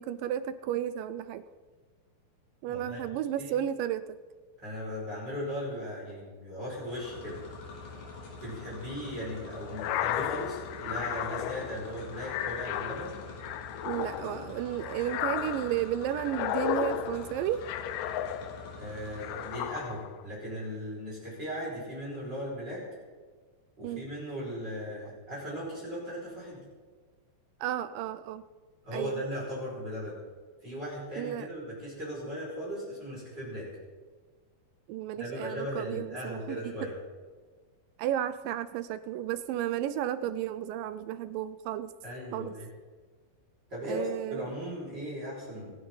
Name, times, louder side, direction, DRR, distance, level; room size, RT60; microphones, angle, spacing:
voice 1, 0.0-1.5 2.6-4.2 13.8-17.7 23.8-24.0 27.6-28.4 28.9-29.2 31.2-31.5 34.9-36.9 38.0-41.9 42.3-42.5 43.9-44.5, right 11 dB, 80° right, 13 dB, 2.0 m, -33 dB
voice 2, 2.6-3.0 3.4-3.5 4.6-7.4 8.4-13.1 18.8-22.8 23.8-26.6 28.8-30.2 30.6-33.7 35.2-36.9 42.0-42.7 43.7-45.7, equal, 25° right, -7 dB, 6.0 m, -37 dB
sound 1, 6.7-20.0, left 3 dB, 70° left, 4.5 m, -45 dB
sound 2, 9.7-18.8 19.2-20.2, left 11 dB, 90° left, 2.7 m, -34 dB
26.0 x 10.0 x 3.9 m, 1.4 s
omnidirectional pair, 4.4 m